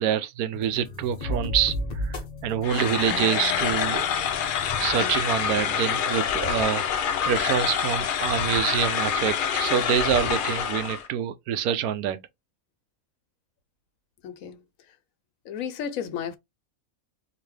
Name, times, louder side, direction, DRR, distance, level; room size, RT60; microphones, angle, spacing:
voice 1, 0.0-2.2 2.4-4.1 4.8-12.2, right 9 dB, 85° right, 1.1 m, -26 dB
sound 1, 0.5-7.3, left 1 dB, 35° left, 0.9 m, -36 dB
sound 2, 2.6-11.1, left 8 dB, 90° left, 0.4 m, -26 dB
voice 2, 14.2-14.6 14.9-15.0 15.4-16.4, left 8 dB, 70° left, 1.0 m, -33 dB
3.9 x 2.6 x 3.2 m
omnidirectional pair, 1.5 m